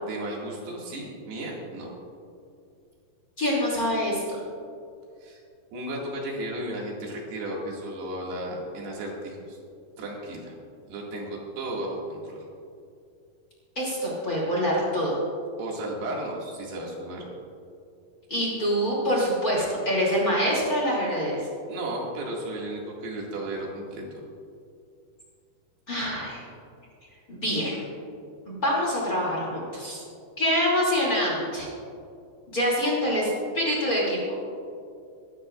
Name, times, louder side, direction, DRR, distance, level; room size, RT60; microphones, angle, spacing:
voice 1, 0.0-1.9 5.2-5.4 5.7-9.6 10.0-10.5 10.9-12.4 15.6-17.3 21.7-24.2, right 1 dB, 90° right, -3 dB, 4.2 m, -34 dB
voice 2, 3.4-4.2 13.8-15.2 18.3-21.4 25.9-26.4 27.3-27.8 28.5-30.0 30.4-31.7 32.5-34.2, equal, 25° left, -4 dB, 2.6 m, -25 dB
23.5 x 11.5 x 2.5 m, 2.5 s
omnidirectional pair, 4.6 m